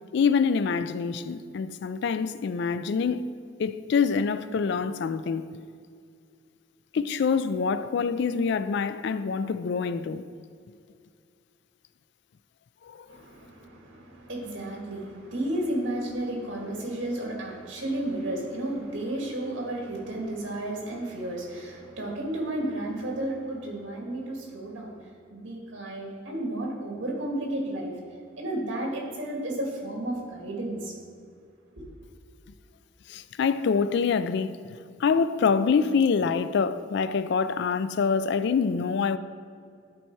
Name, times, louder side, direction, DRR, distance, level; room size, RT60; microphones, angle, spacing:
voice 1, 0.1-3.2 3.6-5.5 6.9-10.2 12.8-13.1 33.1-39.2, left 5 dB, 60° left, 0.3 m, -25 dB
voice 2, 13.1-27.9 28.4-31.0 31.8-31.9, right 1 dB, 75° right, 2.0 m, -32 dB
11.0 x 4.4 x 4.6 m
head